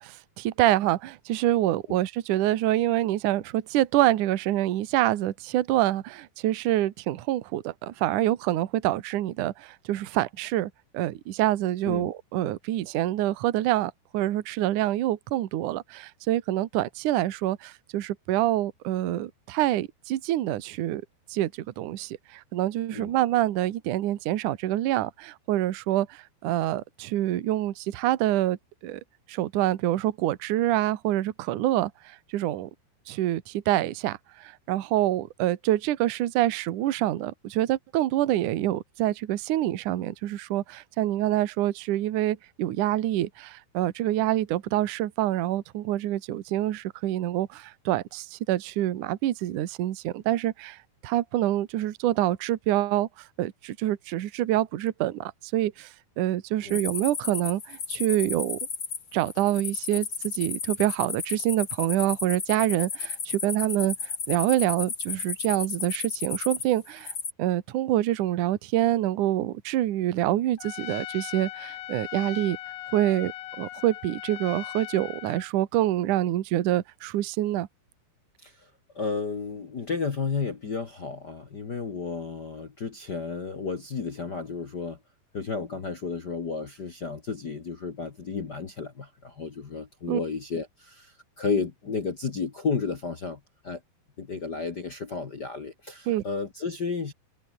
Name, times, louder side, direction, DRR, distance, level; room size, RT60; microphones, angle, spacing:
voice 1, 0.0-21.0 21.3-28.6 28.8-29.0 29.3-32.7 33.1-50.8 51.0-53.1 53.4-55.9 56.2-58.6 59.1-67.1 67.4-72.6 72.9-73.3 73.6-77.7 90.1-90.2 96.1-96.2, right 14 dB, 60° right, 2.4 m, -26 dB
sound 1, 56.7-67.3, left 5 dB, 35° left, 2.8 m, -34 dB
Trumpet, 70.6-75.5, left 15 dB, 90° left, 1.7 m, -39 dB
voice 2, 78.9-85.0 85.3-93.8 94.2-97.1, left 5 dB, 55° left, 1.1 m, -32 dB
omnidirectional pair, 4.8 m